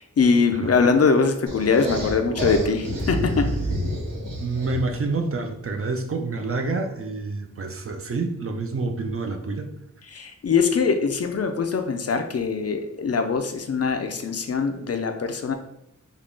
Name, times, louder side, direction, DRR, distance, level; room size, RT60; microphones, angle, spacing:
voice 1, 0.0-3.5 10.1-15.5, left 5 dB, 50° left, 6 dB, 0.4 m, -22 dB
sound 1, 1.5-5.0, equal, 80° right, 1.2 m, -28 dB
voice 2, 4.4-9.7, right 3 dB, 45° right, 5 dB, 0.5 m, -28 dB
3.6 x 2.3 x 3.7 m, 0.79 s
wide cardioid pair, 100°, 32 cm